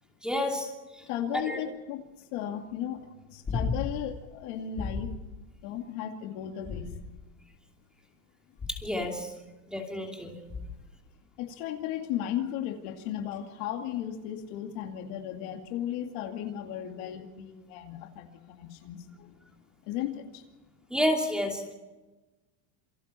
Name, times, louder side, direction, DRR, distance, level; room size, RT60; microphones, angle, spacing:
voice 1, 0.2-0.7 1.5-1.6 8.7-9.3 9.7-10.4 20.9-21.7, left 1 dB, ahead, 1 dB, 2.8 m, -29 dB
voice 2, 1.1-5.1 5.6-6.9 11.4-19.4 19.8-20.5, left 10 dB, 55° left, 4 dB, 2.6 m, -35 dB
sound 1, 3.5-4.1 4.8-5.3 6.6-7.4 8.6-9.0 10.5-10.9 13.3-13.4, left 4 dB, 15° left, 3.2 m, -34 dB
28.0 x 24.0 x 4.4 m, 1.2 s
supercardioid pair, 155°, 48 cm